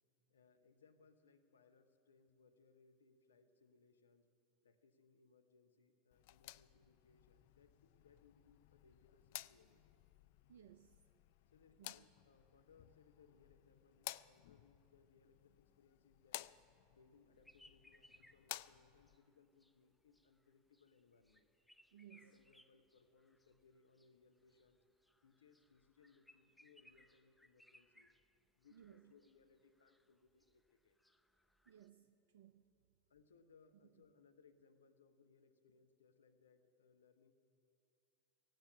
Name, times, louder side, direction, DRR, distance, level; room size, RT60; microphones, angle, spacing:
voice 1, 0.3-4.3 4.6-10.0 11.5-16.5 16.9-21.5 22.2-24.8 25.2-28.1 28.5-31.0 33.1-37.3, left 5 dB, 80° left, 9 dB, 0.7 m, -70 dB
sound 1, 6.1-19.2, left 18 dB, 60° left, 0.3 m, -55 dB
voice 2, 10.5-11.0 11.8-12.0 21.9-22.3 28.7-29.1 31.7-32.6, right 11 dB, 70° right, 10 dB, 0.4 m, -61 dB
sound 2, 17.4-31.9, left 1 dB, 5° left, 0.7 m, -70 dB
16.0 x 9.2 x 9.5 m, 2.7 s
hypercardioid pair, 85°, 0 cm